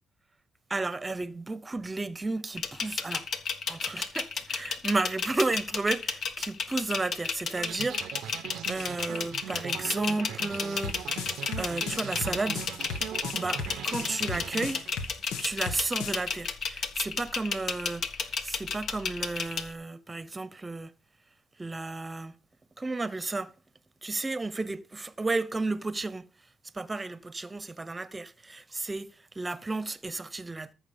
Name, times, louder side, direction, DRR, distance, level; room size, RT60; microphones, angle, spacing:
voice 1, 0.7-3.3 3.7-12.7 13.3-14.9 15.4-20.9 21.6-22.3 22.8-23.5 24.0-26.3 26.7-30.7, right 3 dB, 20° right, 0.8 m, -33 dB
sound 1, 2.6-19.7, left 5 dB, 60° left, 1.4 m, -32 dB
sound 2, 7.6-15.3, right 11 dB, 80° right, 0.6 m, -41 dB
sound 3, 10.8-16.2, left 5 dB, 90° left, 1.3 m, -36 dB
14.0 x 6.1 x 5.3 m
cardioid pair, 90°, 0 cm